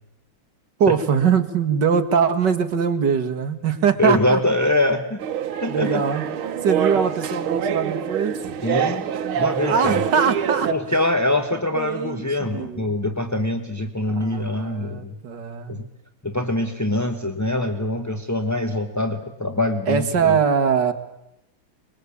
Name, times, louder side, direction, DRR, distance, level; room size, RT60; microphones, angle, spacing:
voice 1, 0.8-4.4 5.7-6.3 6.6-8.4 9.6-10.7 11.7-12.9 14.1-15.8 19.9-20.9, right 6 dB, 55° right, 8 dB, 2.2 m, -22 dB
voice 2, 4.0-5.2 5.6-6.0 8.6-9.1 9.4-10.0 10.7-15.1 15.7-15.8 16.2-20.4, left 1 dB, 15° left, 5 dB, 0.7 m, -23 dB
sound 1, 5.2-10.7, right 8 dB, 75° right, 1.9 m, -25 dB
25.0 x 21.0 x 8.5 m, 0.83 s
omnidirectional pair, 2.3 m